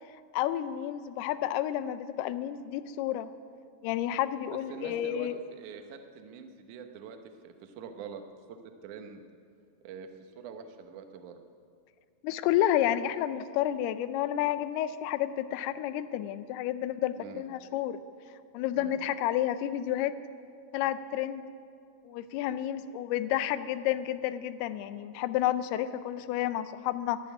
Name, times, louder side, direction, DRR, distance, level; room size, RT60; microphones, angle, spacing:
voice 1, 0.3-3.3 3.8-5.4 12.2-18.0 18.5-20.1 20.7-21.4 22.0-27.2, left 12 dB, 80° left, 12 dB, 2.4 m, -30 dB
voice 2, 4.5-7.2 7.4-8.2 8.5-8.6 8.8-9.2 9.8-11.4 17.1-17.4 18.7-19.0, right 6 dB, 90° right, 6 dB, 1.7 m, -45 dB
13.5 x 10.5 x 9.5 m, 2.3 s
omnidirectional pair, 5.1 m